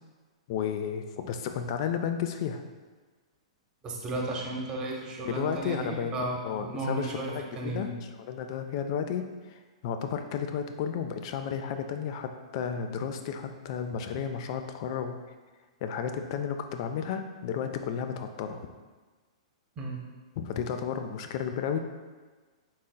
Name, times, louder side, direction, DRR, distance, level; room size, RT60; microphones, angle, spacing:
voice 1, 0.5-2.6 5.2-6.2 6.4-7.9 8.2-15.2 15.8-18.6 20.4-21.8, left 7 dB, 50° left, 7 dB, 0.3 m, -33 dB
voice 2, 3.8-7.9 19.8-20.0, right 2 dB, 25° right, 0 dB, 0.7 m, -34 dB
3.9 x 3.8 x 2.2 m, 1.4 s
hypercardioid pair, 125°, 3 cm